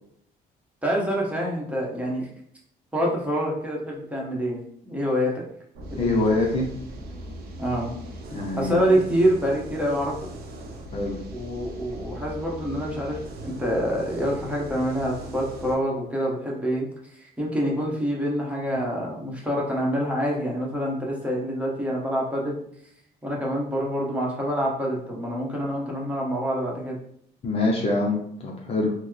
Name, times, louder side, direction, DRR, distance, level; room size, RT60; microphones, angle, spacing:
voice 1, 0.8-2.3 2.9-5.4 5.9-6.2 7.6-7.9 8.6-10.2 11.3-22.6 23.2-27.0, equal, 10° right, -3 dB, 1.0 m, -26 dB
sound 1, 5.7-15.7, right 1 dB, 65° right, 0.7 m, -39 dB
voice 2, 6.0-6.7 8.3-9.0 10.9-11.2 27.4-28.9, left 2 dB, 35° left, -1 dB, 0.6 m, -25 dB
3.1 x 2.1 x 3.7 m, 0.66 s
cardioid pair, 110°, 17 cm